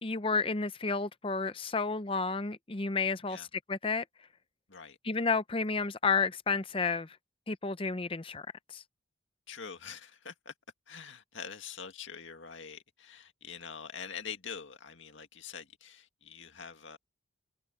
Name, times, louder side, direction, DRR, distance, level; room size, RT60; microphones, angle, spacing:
voice 1, 0.0-4.0 5.0-7.2 7.5-8.8, left 4 dB, 25° left, 0.6 m, -31 dB
voice 2, 9.5-10.5 10.9-17.0, left 6 dB, 70° left, 2.0 m, -45 dB
head